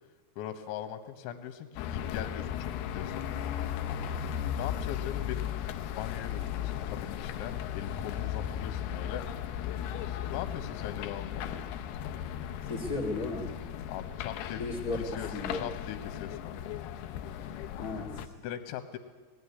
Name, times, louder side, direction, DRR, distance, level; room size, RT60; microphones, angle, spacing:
voice 1, 0.4-3.3 4.5-5.6 5.9-9.3 10.1-11.5 13.9-14.6 14.9-16.7 18.4-19.0, left 10 dB, 75° left, 8 dB, 3.5 m, -40 dB
sound 1, 1.8-18.3, left 10 dB, 90° left, 2.2 m, -36 dB
voice 2, 12.7-13.5 14.6-15.6 17.8-18.3, left 2 dB, 45° left, 2 dB, 1.0 m, -35 dB
20.0 x 15.5 x 9.8 m, 1.4 s
omnidirectional pair, 5.8 m